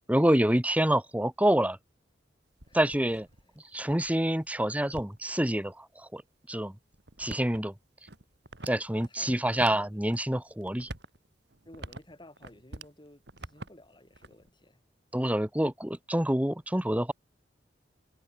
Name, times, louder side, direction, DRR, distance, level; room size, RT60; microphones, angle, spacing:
voice 1, 0.1-1.8 2.7-3.2 3.7-5.8 6.1-6.2 6.5-6.7 7.2-7.7 8.7-10.9 15.1-17.1, right 1 dB, 10° right, 1.4 m, -27 dB
sound 1, 2.5-5.5 6.2-6.3 6.9-9.1 9.5-10.2 10.6-13.0 13.2-14.5, right 2 dB, 65° right, 3.3 m, -46 dB
voice 2, 8.6-9.4 9.9-10.0 11.6-14.8, left 1 dB, 25° left, 4.7 m, -54 dB
head